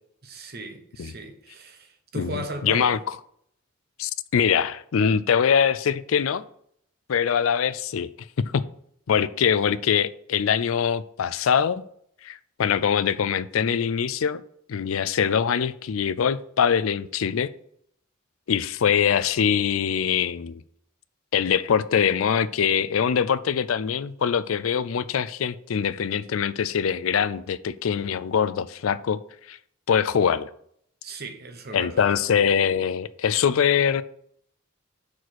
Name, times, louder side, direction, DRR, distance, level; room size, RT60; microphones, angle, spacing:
voice 1, 0.2-3.0 31.0-32.1, right 2 dB, 50° right, 1.1 m, -37 dB
voice 2, 2.2-3.0 4.0-6.4 7.1-8.1 8.4-8.7 9.1-11.8 12.2-14.4 14.7-17.5 18.5-20.6 21.3-29.2 29.5-29.6 29.9-30.5 31.7-34.0, left 7 dB, 80° left, 0.4 m, -23 dB
6.0 x 4.8 x 6.3 m
head